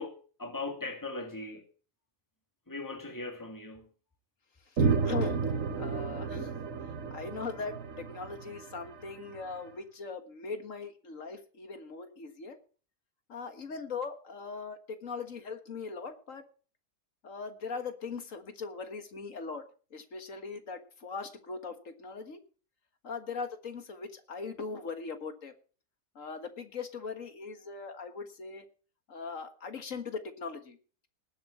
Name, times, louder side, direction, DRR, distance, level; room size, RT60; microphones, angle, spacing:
voice 1, 0.0-1.7 2.7-3.9, left 3 dB, 15° left, 2.1 m, -39 dB
voice 2, 4.8-5.4 5.8-6.5 7.1-12.6 13.3-16.4 17.2-19.6 19.9-22.4 23.0-25.5 26.2-28.6 29.1-30.8, left 4 dB, 60° left, 2.0 m, -40 dB
sound 1, 4.8-9.4, right 5 dB, 65° right, 1.7 m, -32 dB
19.0 x 8.0 x 4.3 m
omnidirectional pair, 1.5 m